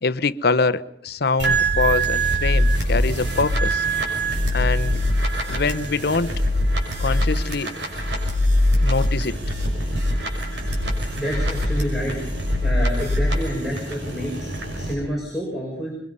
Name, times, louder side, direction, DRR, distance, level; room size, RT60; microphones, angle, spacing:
voice 1, 0.0-3.8 4.5-5.0 5.5-6.3 7.0-7.7 8.7-9.4, left 3 dB, 60° left, 0.8 m, -24 dB
sound 1, 1.4-14.9, equal, 80° right, 6.0 m, -23 dB
voice 2, 11.1-12.2 12.6-14.5 14.8-15.9, equal, ahead, 6.4 m, -28 dB
23.5 x 23.0 x 5.5 m
head